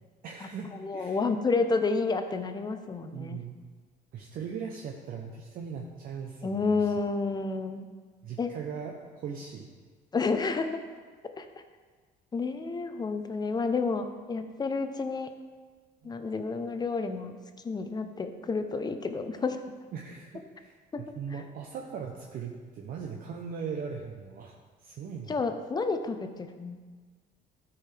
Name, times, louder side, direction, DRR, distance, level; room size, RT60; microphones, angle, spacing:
voice 1, 0.2-1.2 3.1-3.6 4.1-6.9 8.2-9.7 16.0-16.1 19.9-24.5 24.8-25.3, right 6 dB, 60° right, 1 dB, 0.7 m, -39 dB
voice 2, 0.8-3.4 6.4-7.9 8.4-8.5 10.1-10.8 11.4-11.5 12.3-15.3 16.0-17.4 17.6-19.6 20.9-21.1 25.3-26.8, left 4 dB, 25° left, 8 dB, 0.6 m, -30 dB
12.5 x 4.7 x 3.4 m, 1.5 s
cardioid pair, 110°, 17 cm